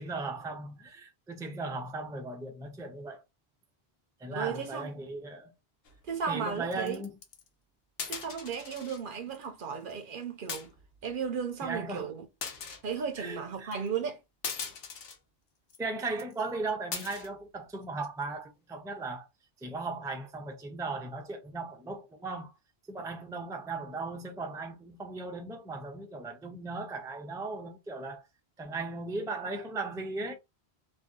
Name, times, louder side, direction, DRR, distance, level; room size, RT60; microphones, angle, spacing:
voice 1, 0.0-3.2 4.2-5.5 6.3-7.1 11.6-12.1 13.2-13.7 15.8-19.3 19.6-22.5 22.9-28.2 28.6-30.3, right 3 dB, 5° right, 0.3 m, -37 dB
voice 2, 4.3-4.9 6.1-7.0 8.1-10.7 11.0-12.3 12.8-14.2, right 6 dB, 60° right, 0.7 m, -35 dB
sound 1, 5.9-6.1 6.7-7.5 8.0-9.0 9.3-9.5 9.7-9.9 10.5-11.0 11.6-11.7 12.4-12.8 13.7-13.9 14.4-15.2 15.7-15.8 16.2-16.3 16.9-17.3 17.8-18.2, left 6 dB, 65° left, 0.9 m, -40 dB
2.6 x 2.3 x 3.5 m
omnidirectional pair, 1.1 m